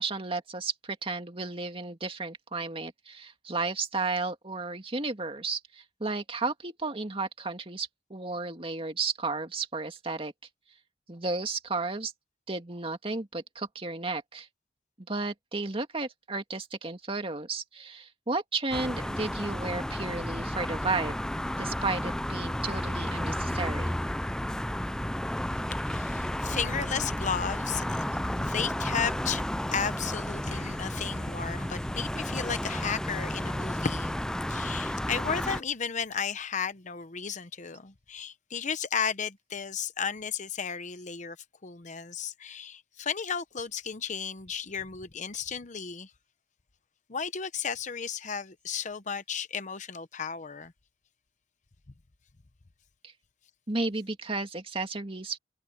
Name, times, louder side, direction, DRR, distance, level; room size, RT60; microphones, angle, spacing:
voice 1, 0.0-10.3 11.1-12.1 12.5-14.5 15.1-21.2 21.6-24.0 53.0-53.1 53.7-55.4, right 3 dB, 30° right, 2.2 m, -33 dB
sound 1, 18.7-35.6, left 1 dB, 5° left, 0.3 m, -32 dB
voice 2, 25.7-34.2 34.5-41.4 41.6-46.1 47.1-50.7, left 6 dB, 45° left, 0.9 m, -34 dB
head